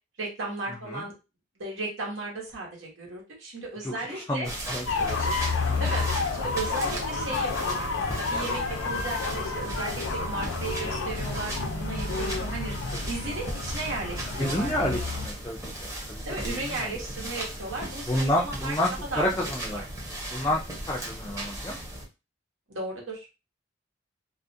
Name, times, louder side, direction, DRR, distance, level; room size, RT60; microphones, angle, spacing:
voice 1, 0.2-1.1 1.6-4.5 5.8-6.1 6.3-14.7 15.0-15.2 16.2-18.7 19.1-19.3 19.7-19.8 20.4-20.6 22.7-23.2, right 2 dB, 85° right, -2 dB, 0.9 m, -35 dB
voice 2, 0.7-1.1 3.8-5.8 13.3-13.4 14.4-17.3 18.0-18.9 19.2-19.9 20.3-20.6 20.9-21.8, left 1 dB, 15° left, -3 dB, 0.3 m, -30 dB
sound 1, 4.4-22.1, right 1 dB, 15° right, 0.7 m, -37 dB
sound 2, 4.9-15.3, left 3 dB, 85° left, 0.5 m, -30 dB
2.3 x 2.0 x 2.6 m, 0.28 s
head